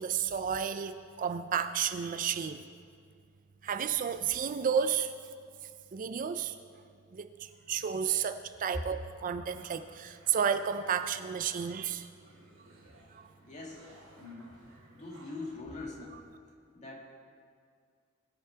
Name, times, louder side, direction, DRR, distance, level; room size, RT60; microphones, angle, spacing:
voice 1, 0.0-2.6 3.6-5.1 5.9-6.6 7.1-12.1 13.1-13.3 16.1-16.2, right 7 dB, 40° right, 10 dB, 0.4 m, -32 dB
sound 1, 9.5-15.6, right 1 dB, 90° right, 3.6 m, -59 dB
voice 2, 13.5-13.8 14.2-14.5 15.0-16.2 16.7-17.1, left 3 dB, 35° left, -2 dB, 2.1 m, -42 dB
20.5 x 6.9 x 4.5 m, 2.3 s
head